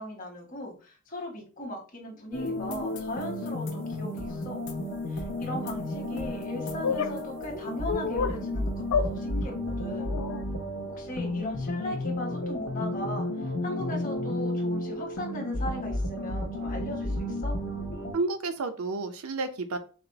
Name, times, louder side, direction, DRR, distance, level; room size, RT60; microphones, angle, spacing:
voice 1, 0.0-4.6 5.1-10.1 10.9-17.6, left 1 dB, 35° left, 1 dB, 1.1 m, -38 dB
sound 1, 2.3-18.1, left 1 dB, 55° left, 0.7 m, -32 dB
sound 2, 6.8-7.1 7.9-8.4 8.9-9.1 10.0-10.4, left 6 dB, 85° left, 0.4 m, -28 dB
voice 2, 18.1-19.8, right 3 dB, 75° right, 8 dB, 0.6 m, -30 dB
4.2 x 2.1 x 4.0 m, 0.37 s
head